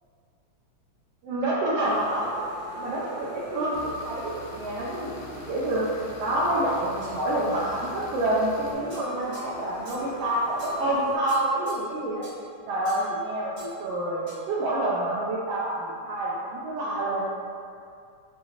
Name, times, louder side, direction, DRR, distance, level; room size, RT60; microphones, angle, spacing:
voice 1, 1.2-2.4 2.7-12.3 12.7-17.3, right 1 dB, 85° right, -7 dB, 1.3 m, -28 dB
sound 1, 1.8-11.2, left 1 dB, 65° left, 1.1 m, -44 dB
sound 2, 3.7-8.7, right 1 dB, 80° left, 2.0 m, -46 dB
sound 3, 7.0-7.9 8.9-10.1 10.6-10.9 11.3-11.9 12.2-12.4 12.8-13.2 13.6-13.8 14.3-14.5, right 1 dB, 45° right, 1.5 m, -49 dB
5.4 x 2.8 x 2.8 m, 2.3 s
omnidirectional pair, 3.3 m